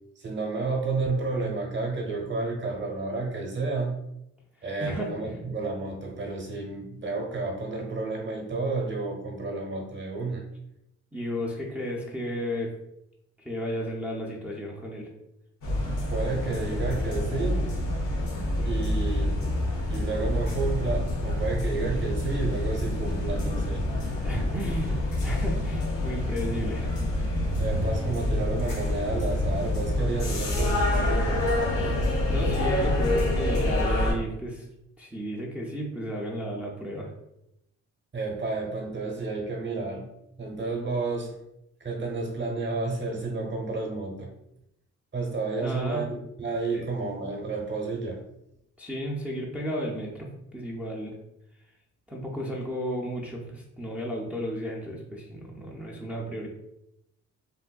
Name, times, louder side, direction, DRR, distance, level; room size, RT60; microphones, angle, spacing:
voice 1, 0.2-4.0 4.6-10.4 16.1-17.7 18.6-19.4 19.9-23.9 27.6-31.4 38.1-40.1 40.4-41.4 41.8-44.3 45.1-48.2, right 3 dB, 40° right, 0 dB, 0.9 m, -31 dB
voice 2, 4.8-5.4 11.1-12.7 13.4-15.1 24.2-26.9 31.7-32.0 32.3-34.7 35.0-37.1 45.6-46.1 46.7-46.8 48.8-50.3 50.5-51.2 52.1-56.5, equal, 5° right, -3 dB, 0.5 m, -33 dB
sound 1, 15.6-34.1, left 1 dB, 85° left, 1.1 m, -27 dB
3.4 x 2.5 x 2.2 m, 0.84 s
cardioid pair, 90°, 30 cm